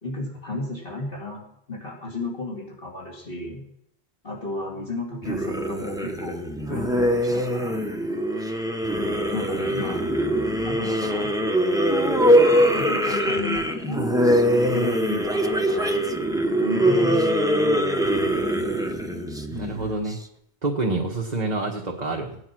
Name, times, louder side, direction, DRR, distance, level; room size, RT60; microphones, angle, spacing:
voice 1, 0.0-1.4 1.7-3.6 4.2-6.4 6.7-7.8 9.3-10.0 10.7-11.3 12.7-14.3 14.7-16.0 16.6-18.1, left 2 dB, 55° left, -3 dB, 3.4 m, -34 dB
sound 1, 5.2-20.1, equal, 5° right, 1.0 m, -22 dB
voice 2, 19.5-20.2 20.6-22.4, right 2 dB, 40° right, 0 dB, 1.6 m, -27 dB
18.0 x 9.7 x 6.2 m, 0.76 s
omnidirectional pair, 1.1 m